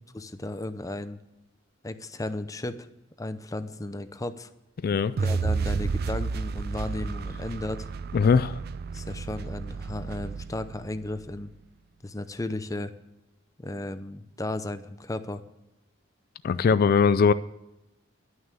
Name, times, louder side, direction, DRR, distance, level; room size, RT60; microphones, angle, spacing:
voice 1, 0.1-1.2 1.8-2.9 3.2-4.5 5.2-7.9 8.9-11.5 12.0-12.9 13.6-15.4, left 2 dB, 15° left, 11 dB, 0.7 m, -34 dB
voice 2, 4.8-5.2 8.1-8.6 16.4-17.3, left 5 dB, 50° left, 15 dB, 0.3 m, -20 dB
sound 1, 5.2-11.3, right 4 dB, 50° right, 0.4 m, -31 dB
11.0 x 6.3 x 8.3 m, 0.94 s
head